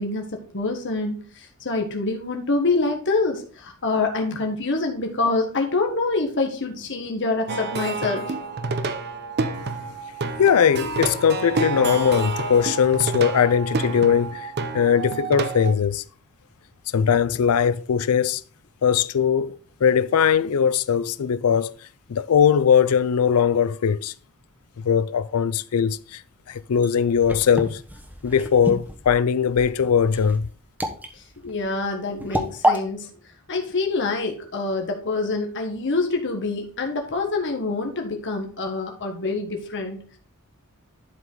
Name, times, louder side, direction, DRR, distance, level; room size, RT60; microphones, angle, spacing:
voice 1, 0.0-8.3 31.1-33.1 33.5-40.0, left 3 dB, 55° left, 1.6 m, -26 dB
Plucked string instrument, 7.5-15.7, right 3 dB, 50° right, 0.8 m, -28 dB
voice 2, 10.4-16.0 16.9-18.4 18.8-19.6 19.8-21.7 22.1-24.1 24.8-26.2 26.5-27.8 28.2-30.5, left 7 dB, 75° left, 0.4 m, -20 dB
sound 1, 26.5-32.8, equal, 10° right, 1.1 m, -29 dB
11.0 x 5.0 x 3.9 m
head